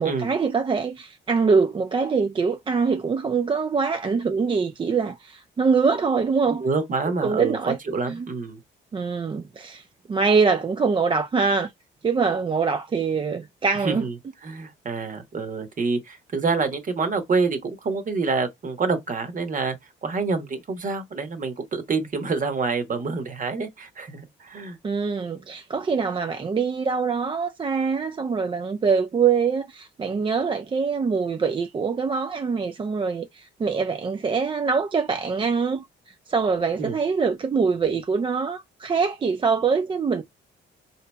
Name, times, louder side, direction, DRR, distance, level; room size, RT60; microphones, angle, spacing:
voice 1, 0.0-6.6 7.2-7.8 8.1-8.3 8.9-11.7 12.0-14.0 24.8-35.9 36.3-40.2, right 5 dB, 25° right, 0.4 m, -24 dB
voice 2, 6.6-8.6 13.8-14.1 14.4-19.8 20.0-24.8 36.8-37.0, right 4 dB, 40° right, 1.1 m, -27 dB
3.9 x 2.8 x 2.2 m
cardioid pair, 90°, 20 cm